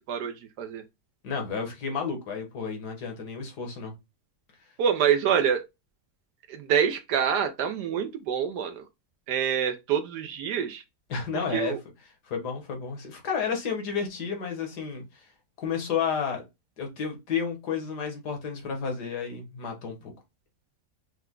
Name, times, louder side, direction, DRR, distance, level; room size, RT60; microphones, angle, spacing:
voice 1, 0.1-0.8 4.8-5.6 6.5-8.9 9.3-10.8 11.3-11.8, right 8 dB, 85° right, 1.2 m, -26 dB
voice 2, 1.2-3.9 11.1-11.8 12.3-15.0 15.6-16.4 16.8-20.1, left 6 dB, 75° left, 1.9 m, -31 dB
5.8 x 2.2 x 3.7 m
omnidirectional pair, 1.7 m